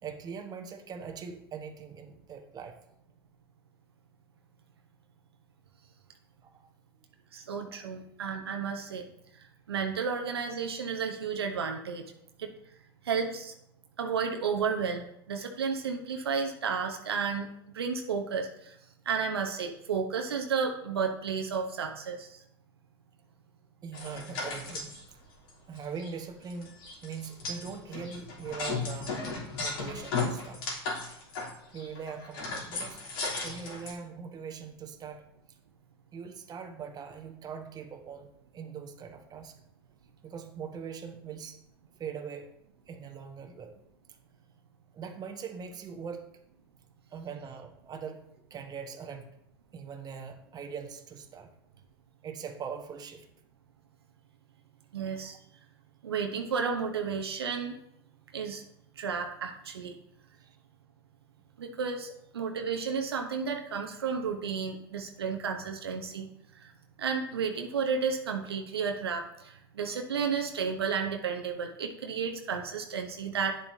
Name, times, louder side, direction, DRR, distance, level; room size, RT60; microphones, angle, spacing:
voice 1, 0.0-2.8 6.4-6.7 7.7-7.8 23.8-25.0 25.7-26.8 27.0-29.3 29.6-30.6 31.7-33.0 33.4-35.3 36.1-39.6 40.2-41.6 42.0-42.5 42.9-43.8 44.9-46.3 47.1-49.3 49.7-51.5 52.2-53.3 60.4-60.6, right 6 dB, 30° right, 4 dB, 1.2 m, -41 dB
voice 2, 7.3-9.0 9.7-12.0 12.4-12.5 13.0-13.5 14.0-17.5 17.7-18.7 19.1-22.4 54.9-55.4 56.0-57.8 58.3-58.6 59.0-59.9 61.6-62.1 62.3-66.3 66.6-66.7 67.0-73.6, right 6 dB, 85° right, 3 dB, 1.0 m, -32 dB
sound 1, 23.9-25.0 25.5-25.6 25.8-26.1 26.5-33.9, left 3 dB, 65° left, 3.3 m, -35 dB
10.0 x 7.2 x 2.8 m, 0.78 s
hypercardioid pair, 90°, 13 cm